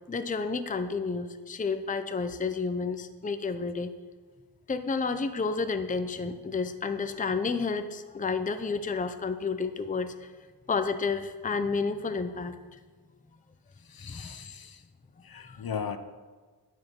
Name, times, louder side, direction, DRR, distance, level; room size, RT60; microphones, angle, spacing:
voice 1, 0.1-3.9 4.7-10.3 10.7-12.6 14.1-14.3 15.4-15.6, left 4 dB, 20° left, 9 dB, 0.5 m, -30 dB
voice 2, 13.9-14.8 15.2-16.0, left 6 dB, 60° left, 10 dB, 0.7 m, -37 dB
9.4 x 7.7 x 5.9 m, 1.4 s
wide cardioid pair, 120°, 41 cm